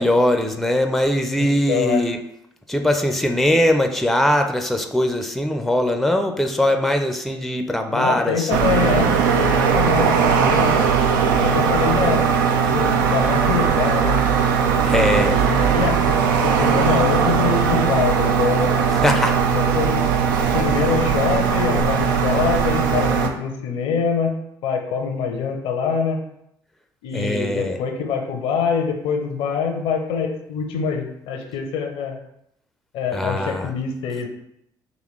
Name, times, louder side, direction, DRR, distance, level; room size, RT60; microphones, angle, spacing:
voice 1, 0.0-2.2 2.7-8.7 14.8-15.3 18.9-19.4 27.1-27.8 33.1-33.7, left 1 dB, ahead, 5 dB, 0.5 m, -21 dB
voice 2, 1.4-2.0 7.9-10.7 11.2-12.3 12.7-14.3 14.9-18.8 19.5-20.1 20.5-26.2 27.0-32.2 32.9-34.3, left 6 dB, 65° left, 4 dB, 0.6 m, -24 dB
sound 1, 8.5-23.3, right 6 dB, 80° right, 0.4 m, -19 dB
4.0 x 2.9 x 3.1 m, 0.77 s
hypercardioid pair, 50°, 10 cm